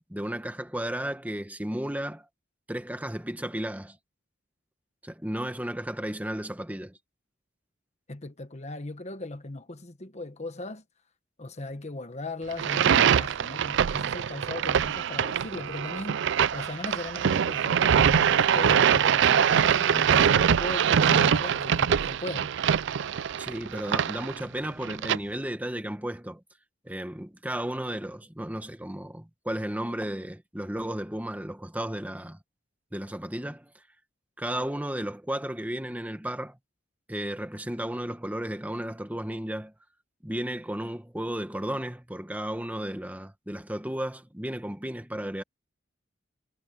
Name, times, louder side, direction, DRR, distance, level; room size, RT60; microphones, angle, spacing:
voice 1, 0.0-2.3 2.7-4.0 5.0-7.0 23.4-26.4 26.8-32.4 32.9-33.8 34.4-36.6 37.1-39.7 40.2-45.4, right 1 dB, 10° right, 1.4 m, -34 dB
voice 2, 8.1-10.8 11.4-22.5, left 2 dB, 35° left, 1.3 m, -37 dB
sound 1, 12.5-25.2, right 8 dB, 65° right, 0.4 m, -23 dB
head